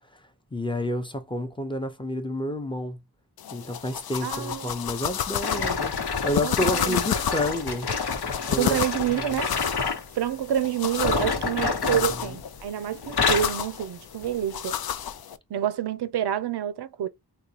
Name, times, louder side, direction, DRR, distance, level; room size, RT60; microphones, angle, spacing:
voice 1, 0.1-3.0 3.5-7.9 8.5-8.8 9.1-9.4 11.8-12.4, left 1 dB, 15° left, 0.6 m, -30 dB
sound 1, 3.4-15.4, left 10 dB, 65° left, 0.5 m, -32 dB
voice 2, 4.2-4.7 6.4-7.0 8.5-9.5 10.1-14.8 15.5-17.1, right 10 dB, 85° right, 0.5 m, -28 dB
sound 2, 5.4-10.1 10.9-12.7 13.0-13.6 14.2-14.4 15.1-15.2, left 5 dB, 85° left, 1.1 m, -28 dB
3.9 x 2.3 x 2.8 m
wide cardioid pair, 105°, 39 cm